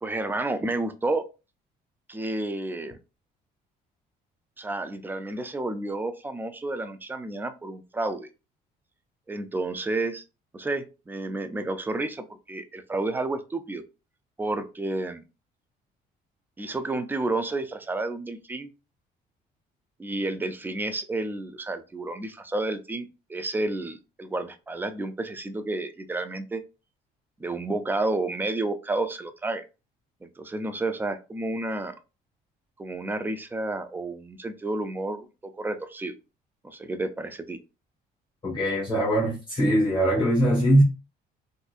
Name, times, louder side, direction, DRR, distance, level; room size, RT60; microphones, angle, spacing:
voice 1, 0.0-1.3 2.1-3.0 4.6-8.3 9.3-10.2 10.5-13.8 14.4-15.2 16.6-18.7 20.0-26.6 27.4-29.6 30.2-31.9 32.8-36.2 36.6-37.6, right 2 dB, 10° right, 0.4 m, -31 dB
voice 2, 38.4-40.8, right 1 dB, 30° left, 1.5 m, -21 dB
3.8 x 2.6 x 2.4 m
cardioid pair, 110°, 17 cm